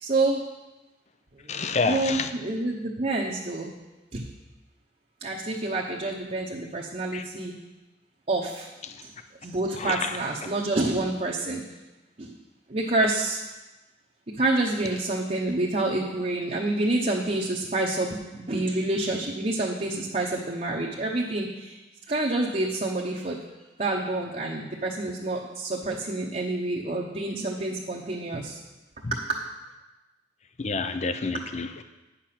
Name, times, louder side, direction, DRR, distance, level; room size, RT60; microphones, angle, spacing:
voice 1, 0.0-0.4 1.3-3.7 4.1-4.3 5.2-7.5 8.3-8.7 9.0-9.1 9.4-11.6 12.2-12.4 12.7-13.4 14.3-21.8 22.1-23.4 23.8-28.6 29.1-29.4, right 2 dB, 40° right, -2 dB, 0.9 m, -28 dB
voice 2, 1.5-2.3 7.1-7.2 9.8-10.2 29.0-29.1 30.6-31.8, left 4 dB, 40° left, 9 dB, 0.5 m, -28 dB
9.6 x 6.8 x 5.8 m, 1.1 s
head